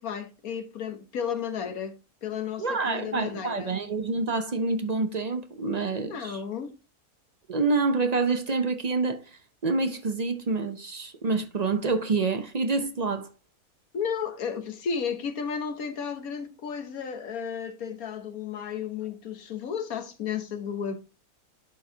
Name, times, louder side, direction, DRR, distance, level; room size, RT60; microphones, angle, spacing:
voice 1, 0.0-1.9 2.2-3.7 6.1-6.7 13.9-21.0, left 7 dB, 70° left, 1.5 m, -33 dB
voice 2, 2.6-6.4 7.5-9.3 9.6-13.3, right 3 dB, 45° right, 0.5 m, -27 dB
11.5 x 4.7 x 2.7 m
omnidirectional pair, 1.6 m